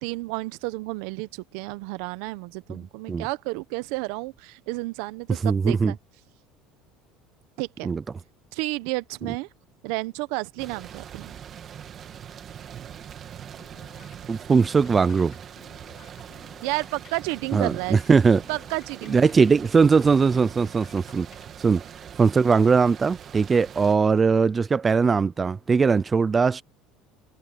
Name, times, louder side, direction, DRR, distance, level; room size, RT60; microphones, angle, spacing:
voice 1, 0.0-6.0 7.6-7.9 8.5-9.5 9.8-11.3 16.6-18.0 18.5-19.3, right 23 dB, 75° right, 0.9 m, -31 dB
voice 2, 5.4-5.9 7.8-8.0 14.3-15.3 17.5-18.4 19.1-21.3 21.6-21.8 22.2-26.6, right 5 dB, 20° right, 0.3 m, -20 dB
sound 1, 10.6-24.0, right 9 dB, 35° right, 1.7 m, -42 dB
sound 2, 13.6-21.4, left 11 dB, 45° left, 3.6 m, -54 dB
cardioid pair, 145°, 0 cm